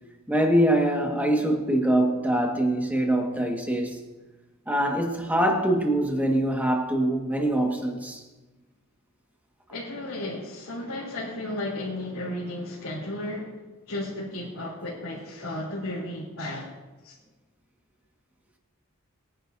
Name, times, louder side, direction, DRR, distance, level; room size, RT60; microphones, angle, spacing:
voice 1, 0.3-4.0 4.7-8.2, right 1 dB, 10° right, 1.7 m, -24 dB
voice 2, 9.7-13.5 13.9-16.7 17.0-17.1, left 1 dB, 85° left, 3.2 m, -34 dB
23.5 x 10.0 x 2.7 m
head